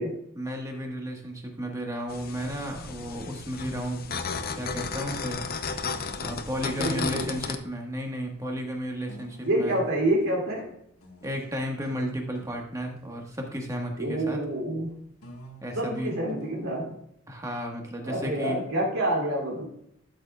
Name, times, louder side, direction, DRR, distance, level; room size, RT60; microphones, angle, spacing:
voice 1, 0.3-4.2 4.5-5.4 6.2-9.8 11.2-14.4 15.6-16.1 17.3-18.6, equal, 15° right, 1 dB, 1.4 m, -33 dB
sound 1, 2.1-7.6, left 5 dB, 45° left, 0.6 m, -34 dB
sound 2, 2.3-6.7 7.3-7.4 9.1-13.8 14.8-16.8, right 1 dB, 85° left, 1.6 m, -50 dB
voice 2, 6.8-7.4 9.4-10.8 14.0-15.0 15.7-16.9 18.0-19.6, right 1 dB, 80° right, -4 dB, 2.6 m, -27 dB
12.0 x 7.1 x 2.4 m, 0.73 s
head